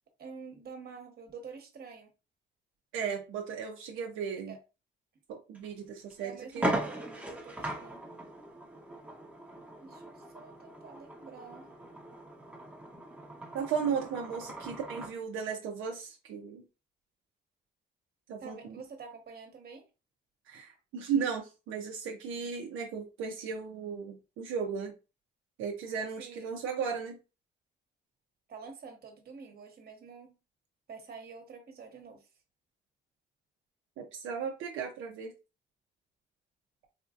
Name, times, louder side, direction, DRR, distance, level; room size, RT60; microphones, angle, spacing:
voice 1, 0.2-2.1 4.5-4.6 6.2-8.0 9.8-11.7 13.8-13.9 18.4-19.9 26.2-26.6 28.5-30.4 30.9-32.3, right 5 dB, 50° right, 1.1 m, -48 dB
voice 2, 2.9-4.5 5.3-6.7 13.5-16.6 18.3-18.8 20.5-24.9 25.6-27.2 34.0-35.3, right 6 dB, 90° right, 0.6 m, -35 dB
sound 1, 5.5-5.7 6.1-6.2 6.5-15.2, right 1 dB, 5° right, 0.8 m, -39 dB
4.2 x 2.5 x 2.4 m
cardioid pair, 90°, 20 cm